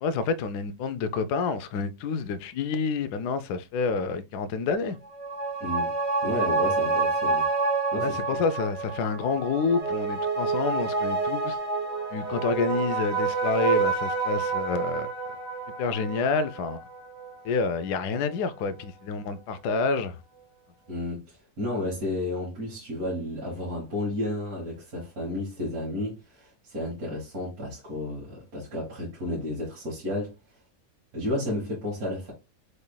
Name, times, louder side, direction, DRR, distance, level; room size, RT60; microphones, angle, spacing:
voice 1, 0.0-5.0 8.0-11.6 12.1-15.1 15.8-16.8 17.4-20.2, left 4 dB, 85° left, 1.2 m, -28 dB
sound 1, 5.0-17.9 18.2-18.3, right 4 dB, 30° right, 1.4 m, -28 dB
voice 2, 5.6-5.9 6.2-7.5 7.9-8.4 20.9-30.3 31.1-32.3, left 1 dB, 65° right, 2.4 m, -32 dB
6.5 x 3.4 x 2.2 m
omnidirectional pair, 1.7 m